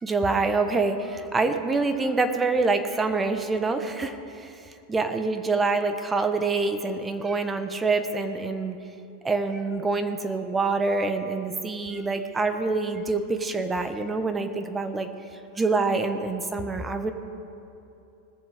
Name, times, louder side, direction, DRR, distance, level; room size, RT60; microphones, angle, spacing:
voice 1, 0.0-8.8 9.2-15.1 15.6-17.1, right 3 dB, 15° right, 8 dB, 1.1 m, -26 dB
20.5 x 7.2 x 5.0 m, 2.8 s
hypercardioid pair, 100°, 0 cm